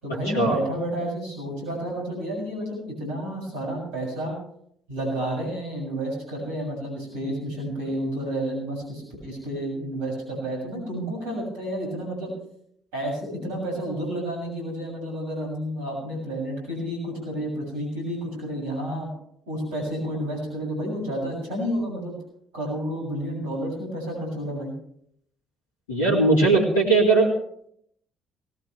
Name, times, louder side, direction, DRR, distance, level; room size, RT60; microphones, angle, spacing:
voice 1, 0.0-4.4 4.9-12.3 12.9-19.1 19.5-22.2 22.5-24.7, right 1 dB, 70° right, -1 dB, 7.3 m, -30 dB
voice 2, 25.9-27.3, right 3 dB, 75° left, -5 dB, 2.5 m, -19 dB
19.0 x 18.0 x 3.3 m, 0.66 s
figure-of-eight pair, 45°, 0 cm